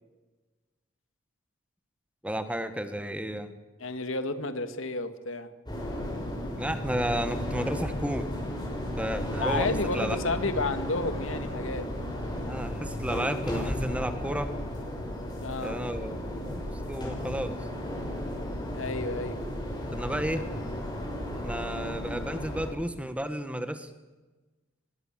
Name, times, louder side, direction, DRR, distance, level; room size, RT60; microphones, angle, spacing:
voice 1, 2.2-3.5 6.5-8.3 9.0-9.7 9.9-10.3 12.5-14.5 15.6-17.5 19.9-20.4 21.4-23.9, equal, 5° right, 9 dB, 1.5 m, -32 dB
voice 2, 3.8-5.5 9.3-11.9 15.4-15.8 18.7-19.4 20.3-20.4 21.8-22.0, left 3 dB, 75° left, 10 dB, 2.1 m, -32 dB
sound 1, 5.7-22.7, left 1 dB, 20° left, 6.7 m, -34 dB
25.5 x 21.5 x 7.6 m, 1.2 s
head